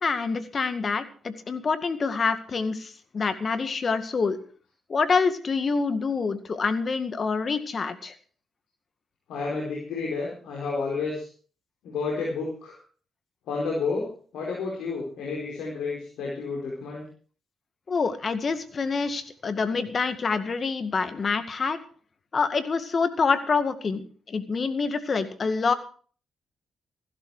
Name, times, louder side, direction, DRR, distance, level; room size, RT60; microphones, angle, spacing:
voice 1, 0.0-4.4 4.9-8.1 17.9-21.8 22.3-25.7, left 4 dB, 50° left, 11 dB, 1.9 m, -26 dB
voice 2, 9.3-11.3 11.8-12.8 13.5-14.1 14.3-17.0, left 4 dB, 80° left, -3 dB, 4.7 m, -30 dB
15.5 x 12.5 x 4.9 m, 0.43 s
supercardioid pair, 55°, 0 cm